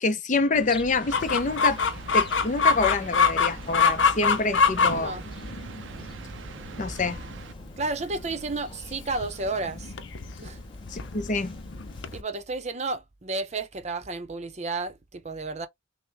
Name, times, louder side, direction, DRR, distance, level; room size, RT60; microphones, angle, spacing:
voice 1, 0.0-1.8 2.1-5.2 6.8-7.2 10.9-11.5, left 3 dB, 45° left, 0.6 m, -26 dB
sound 1, 0.5-12.2, left 1 dB, 25° left, 0.9 m, -44 dB
sound 2, 1.0-7.5, right 4 dB, 85° right, 0.5 m, -41 dB
Chicken rooster, 1.1-12.2, left 5 dB, 90° left, 0.6 m, -26 dB
voice 2, 7.8-9.9 10.4-10.6 12.1-15.7, right 3 dB, 35° right, 0.7 m, -32 dB
5.9 x 2.1 x 3.4 m
head